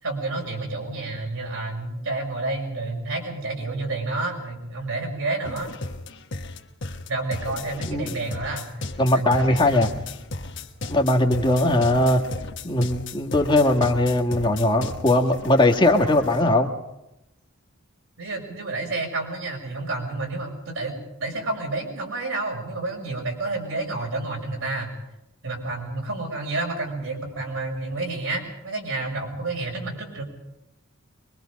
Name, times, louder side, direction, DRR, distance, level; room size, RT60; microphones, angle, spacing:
voice 1, 0.0-5.7 7.1-8.7 9.1-10.0 18.2-20.9 21.2-24.9 25.4-30.2, right 2 dB, 80° right, 0 dB, 6.3 m, -30 dB
sound 1, 5.4-16.6, left 2 dB, 60° left, 1.4 m, -35 dB
voice 2, 7.9-8.2 9.0-9.9 10.9-12.2 12.6-16.7, left 1 dB, 25° left, 2 dB, 1.8 m, -20 dB
24.0 x 23.0 x 5.3 m, 0.91 s
head